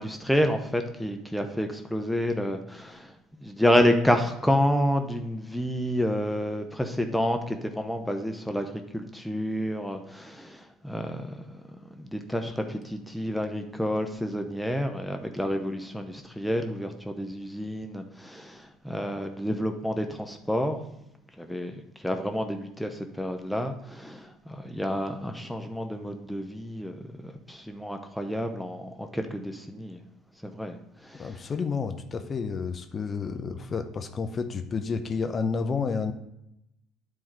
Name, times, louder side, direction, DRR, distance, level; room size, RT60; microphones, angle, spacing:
voice 1, 0.0-3.1 3.4-11.5 11.9-20.8 21.4-30.0 30.4-31.4, equal, 5° left, 5 dB, 0.7 m, -29 dB
voice 2, 31.2-36.1, left 5 dB, 35° left, 7 dB, 0.6 m, -30 dB
9.4 x 3.7 x 4.6 m, 0.83 s
figure-of-eight pair, 55°, 0 cm